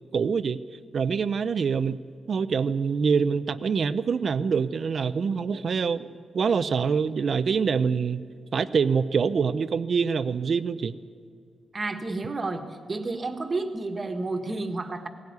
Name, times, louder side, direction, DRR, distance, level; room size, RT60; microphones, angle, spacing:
voice 1, 0.1-0.6 0.9-2.0 2.3-6.1 6.3-8.2 8.5-11.0, right 6 dB, 45° right, 13 dB, 0.6 m, -25 dB
voice 2, 11.7-15.1, right 3 dB, 25° right, 6 dB, 1.5 m, -31 dB
18.0 x 16.5 x 9.6 m, 2.3 s
wide cardioid pair, 150°, 0 cm